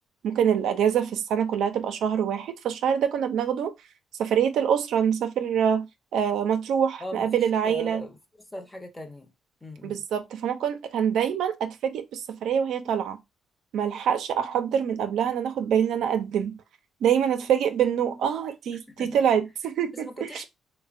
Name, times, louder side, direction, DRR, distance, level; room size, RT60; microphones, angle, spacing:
voice 1, 0.2-3.7 4.2-5.9 6.1-8.0 9.8-13.2 13.7-16.6 17.0-20.4, right 8 dB, 75° right, 0.4 m, -25 dB
voice 2, 7.0-8.2 8.5-9.3 9.6-10.0 18.9-19.1 19.9-20.4, left 1 dB, 10° left, 0.7 m, -39 dB
3.2 x 2.1 x 2.4 m
cardioid pair, 90°, 0 cm